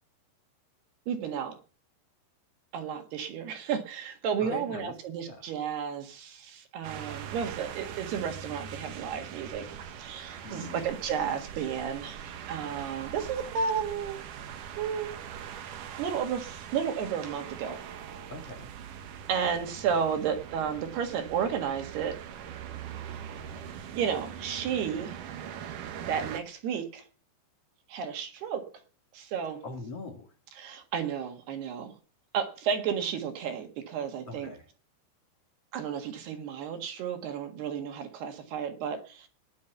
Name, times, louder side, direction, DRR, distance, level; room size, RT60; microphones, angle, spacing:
voice 1, 1.1-1.5 2.7-9.7 10.0-14.2 14.8-15.1 16.0-17.8 19.3-22.2 23.9-25.2 26.0-27.0 27.9-28.6 29.1-29.6 30.6-32.0 32.3-34.5 35.7-39.3, right 7 dB, 65° right, 6 dB, 3.3 m, -32 dB
voice 2, 4.4-4.9 5.2-5.5 10.4-10.8 18.3-18.7 29.6-30.3 34.3-34.7, left 3 dB, 60° left, 4 dB, 1.6 m, -41 dB
sound 1, 6.8-26.4, right 8 dB, 80° right, 1.8 m, -42 dB
20.0 x 7.4 x 7.0 m, 0.39 s
omnidirectional pair, 5.7 m